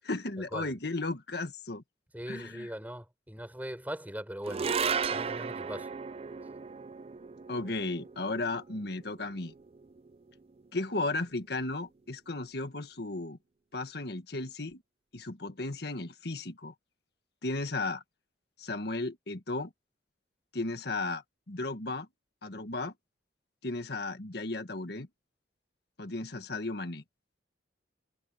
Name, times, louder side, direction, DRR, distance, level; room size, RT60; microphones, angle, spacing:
voice 1, 0.1-1.8 2.3-2.7 7.5-9.5 10.7-13.4 13.7-14.8 15.1-16.7 17.4-18.0 18.6-19.7 20.5-22.1 22.4-22.9 23.6-25.1 26.0-27.0, left 2 dB, 65° left, 1.6 m, -35 dB
voice 2, 2.1-4.7 5.1-5.9, equal, 10° right, 4.1 m, -40 dB
sound 1, 4.4-10.9, right 5 dB, 35° right, 0.4 m, -36 dB
head